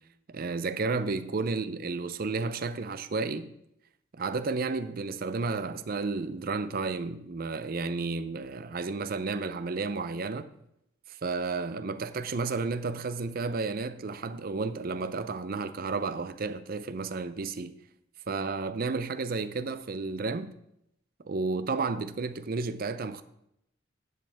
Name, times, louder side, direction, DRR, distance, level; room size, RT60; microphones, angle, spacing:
voice 1, 0.3-3.5 4.1-10.5 11.1-17.7 18.3-20.5 21.2-23.2, right 4 dB, 45° right, 0.5 m, -32 dB
10.5 x 7.7 x 3.4 m
head